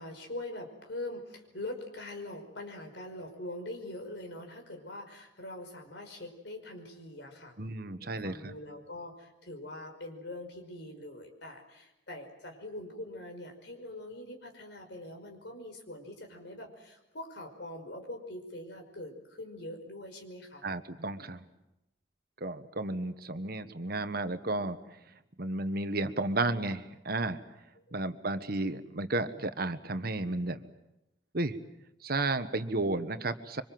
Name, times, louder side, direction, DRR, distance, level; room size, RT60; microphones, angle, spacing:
voice 1, 0.0-7.5 8.0-20.6 27.8-28.0, left 1 dB, 65° left, 4 dB, 5.3 m, -43 dB
voice 2, 7.6-8.5 20.6-21.5 22.4-24.8 25.4-27.4 27.9-30.6 31.3-31.6 32.0-33.6, right 2 dB, 55° right, 10 dB, 1.3 m, -33 dB
26.0 x 25.0 x 7.7 m, 0.91 s
head